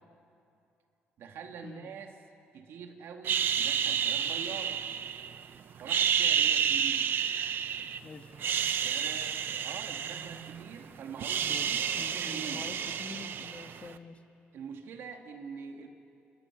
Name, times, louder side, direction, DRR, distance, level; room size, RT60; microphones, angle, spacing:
voice 1, 1.2-2.1 2.5-4.8 5.8-7.1 8.8-12.7 14.5-15.9, right 6 dB, 75° right, 4 dB, 2.3 m, -44 dB
sound 1, 3.2-5.4 5.8-8.0 8.3-10.7 11.0-13.9, right 8 dB, 55° right, 0.9 m, -30 dB
voice 2, 8.0-8.3 11.4-14.2, left 4 dB, 30° left, 7 dB, 1.4 m, -46 dB
28.5 x 27.0 x 6.1 m, 2.7 s
cardioid pair, 135°, 4 cm